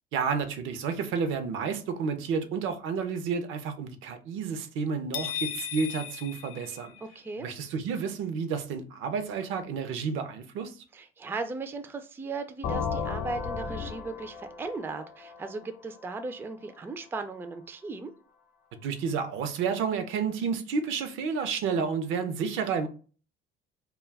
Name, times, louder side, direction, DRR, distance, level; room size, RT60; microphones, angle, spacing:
voice 1, 0.1-7.0 7.4-10.8 18.7-22.9, right 5 dB, 75° right, 0.6 m, -31 dB
sound 1, 5.1-7.3, left 10 dB, 90° left, 0.4 m, -36 dB
voice 2, 7.2-7.5 10.9-18.1, right 3 dB, 10° right, 0.3 m, -37 dB
sound 2, 12.6-16.4, left 6 dB, 50° left, 0.7 m, -35 dB
2.3 x 2.2 x 3.3 m
cardioid pair, 100°, 21 cm